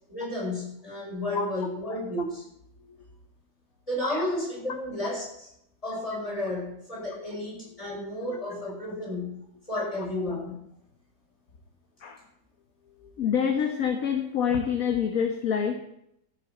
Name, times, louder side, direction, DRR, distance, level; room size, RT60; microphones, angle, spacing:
voice 1, 0.1-2.4 3.9-5.3 5.8-9.4 9.7-10.6, left 1 dB, 20° left, -4 dB, 6.0 m, -32 dB
voice 2, 13.0-15.8, left 7 dB, 55° left, 5 dB, 1.4 m, -27 dB
14.0 x 7.1 x 6.8 m, 0.76 s
omnidirectional pair, 1.9 m